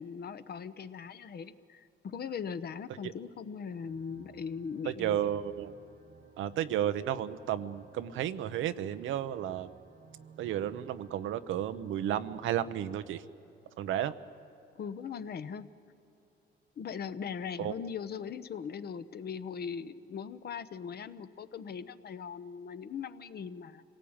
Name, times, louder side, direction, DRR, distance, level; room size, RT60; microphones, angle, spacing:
voice 1, 0.0-5.2 14.8-15.7 16.8-23.8, left 6 dB, 55° left, 12 dB, 0.9 m, -40 dB
sound 1, 3.7-13.2, right 6 dB, 50° right, 1.2 m, -58 dB
voice 2, 4.8-5.8 6.4-9.7 10.4-13.2 13.8-14.1 17.6-17.7, right 11 dB, 85° right, 11 dB, 0.8 m, -33 dB
26.0 x 18.0 x 8.8 m, 2.8 s
cardioid pair, 90°, 20 cm